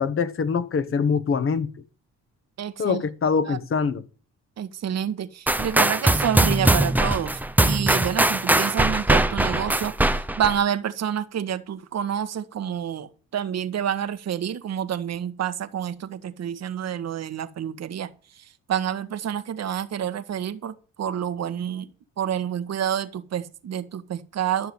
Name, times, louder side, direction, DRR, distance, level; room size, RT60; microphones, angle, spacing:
voice 1, 0.0-1.7 2.8-4.0, left 5 dB, 45° left, 1.3 m, -24 dB
voice 2, 2.6-3.0 3.5-3.6 4.6-18.1 18.3-21.9 22.2-24.7, right 9 dB, 60° right, 1.4 m, -28 dB
sound 1, 5.5-10.6, right 1 dB, 5° right, 0.7 m, -21 dB
12.5 x 6.8 x 7.8 m
cardioid pair, 90°, 30 cm